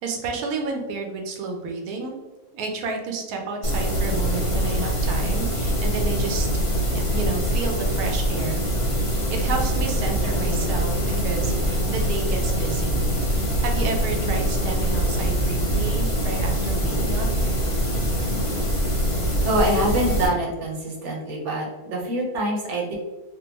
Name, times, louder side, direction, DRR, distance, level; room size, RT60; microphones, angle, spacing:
voice 1, 0.0-2.2 2.5-6.5 6.9-8.6 9.0-13.0 13.4-17.3, right 4 dB, 85° right, 3 dB, 1.1 m, -31 dB
sound 1, 3.6-20.3, equal, 40° left, 0.4 m, -23 dB
voice 2, 19.4-22.9, right 1 dB, 60° right, -1 dB, 0.9 m, -25 dB
3.7 x 2.1 x 2.8 m, 1.2 s
omnidirectional pair, 1.6 m